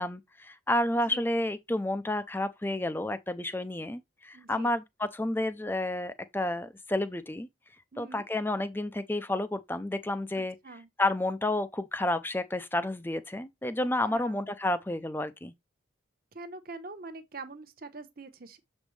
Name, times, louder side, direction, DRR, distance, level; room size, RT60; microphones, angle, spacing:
voice 1, 0.0-7.5 8.0-10.6 11.0-15.5, left 1 dB, 10° left, 0.5 m, -30 dB
voice 2, 4.3-4.8 7.9-8.3 10.4-10.9 14.1-14.4 16.3-18.6, right 3 dB, 45° right, 1.0 m, -44 dB
7.3 x 5.2 x 3.2 m
head